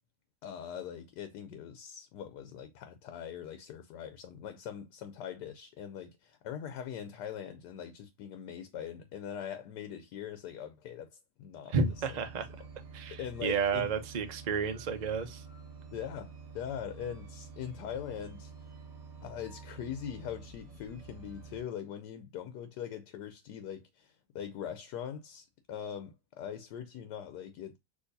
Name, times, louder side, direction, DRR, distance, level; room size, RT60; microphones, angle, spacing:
voice 1, 0.4-12.2 13.1-13.9 15.9-18.5 19.2-27.8, left 9 dB, 75° left, 1.2 m, -42 dB
voice 2, 11.7-12.5 12.9-15.4, right 5 dB, 70° right, 0.4 m, -31 dB
sound 1, 11.8-21.6, right 5 dB, 40° right, 1.6 m, -49 dB
6.3 x 2.9 x 2.6 m
omnidirectional pair, 1.9 m